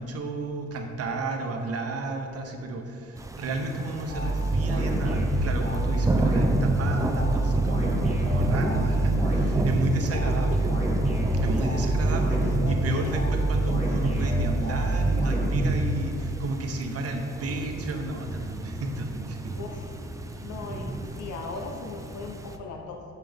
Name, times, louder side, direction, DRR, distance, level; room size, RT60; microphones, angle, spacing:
voice 1, 0.0-10.7 11.3-19.6, right 2 dB, 50° right, 4 dB, 0.9 m, -32 dB
sound 1, 3.2-22.6, right 1 dB, 10° right, 0.4 m, -33 dB
sound 2, 4.1-16.4, right 2 dB, 20° left, 1.5 m, -25 dB
voice 2, 10.3-10.6 11.6-11.7 12.3-13.2 19.5-19.9 20.4-23.0, left 4 dB, 75° left, 2 dB, 0.8 m, -38 dB
6.7 x 5.7 x 3.5 m, 2.5 s
cardioid pair, 90°, 30 cm